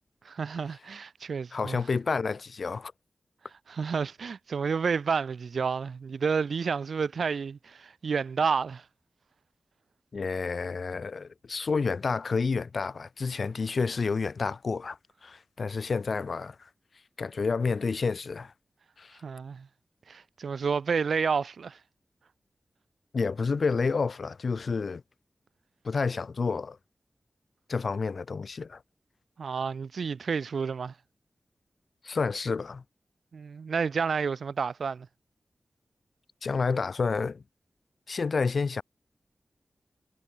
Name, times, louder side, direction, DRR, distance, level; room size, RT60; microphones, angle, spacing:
voice 1, 0.2-1.8 3.7-8.8 19.2-19.7 20.1-21.8 29.4-30.9 33.3-35.1, right 5 dB, 90° right, 1.0 m, -30 dB
voice 2, 1.5-2.9 10.1-16.7 17.2-18.5 19.0-19.2 23.1-25.0 25.8-26.8 27.7-28.8 32.0-32.8 36.4-37.4 38.1-38.8, left 4 dB, 65° left, 2.4 m, -29 dB
wide cardioid pair, 100°, 0 cm